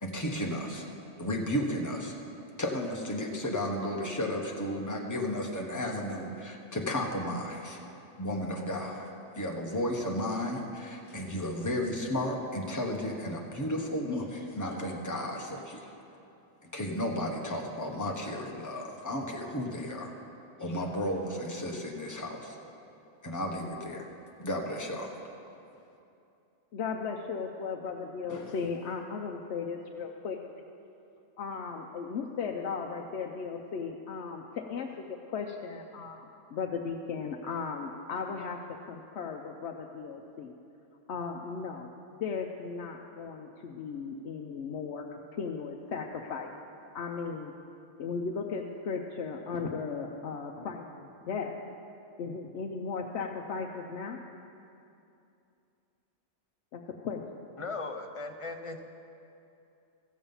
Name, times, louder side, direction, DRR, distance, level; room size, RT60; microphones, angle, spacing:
voice 1, 0.0-0.8 1.2-2.1 2.6-7.8 8.2-9.1 9.3-15.9 16.6-20.1 20.6-22.6 23.2-24.0 24.4-25.2 28.3-28.5, left 1 dB, 15° left, 0 dB, 1.1 m, -33 dB
voice 2, 26.7-30.6 31.4-38.6 38.8-40.5 41.1-41.9 42.2-45.1 45.3-46.5 46.9-47.5 48.0-51.6 52.2-54.2 56.7-57.3, left 5 dB, 70° left, 1 dB, 0.9 m, -36 dB
voice 3, 57.6-58.8, left 3 dB, 35° left, 4 dB, 0.6 m, -37 dB
15.0 x 7.3 x 5.5 m, 2.7 s
omnidirectional pair, 1.2 m